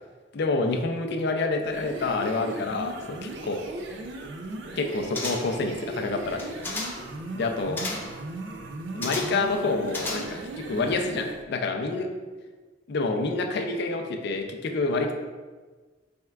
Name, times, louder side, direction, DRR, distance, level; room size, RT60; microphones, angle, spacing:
voice 1, 0.3-3.6 4.8-6.5 7.3-7.8 8.9-12.1 12.9-15.1, left 3 dB, 60° left, 4 dB, 0.4 m, -28 dB
sound 1, 1.6-11.4, right 2 dB, 70° right, 0.4 m, -37 dB
sound 2, 5.1-5.7 6.3-7.1 7.8-8.2 9.0-9.5 9.9-10.6 10.9-11.0, left 2 dB, 10° left, 0.5 m, -34 dB
4.3 x 3.5 x 2.3 m, 1.3 s
head